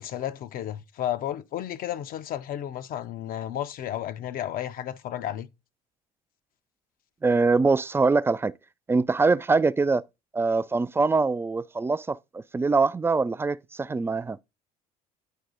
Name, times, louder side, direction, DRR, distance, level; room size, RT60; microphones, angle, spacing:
voice 1, 0.0-5.5, left 11 dB, 50° left, 0.6 m, -32 dB
voice 2, 7.2-8.5 8.9-10.0 10.3-14.4, right 4 dB, 15° right, 0.3 m, -23 dB
10.0 x 4.6 x 3.8 m
hypercardioid pair, 70°, 19 cm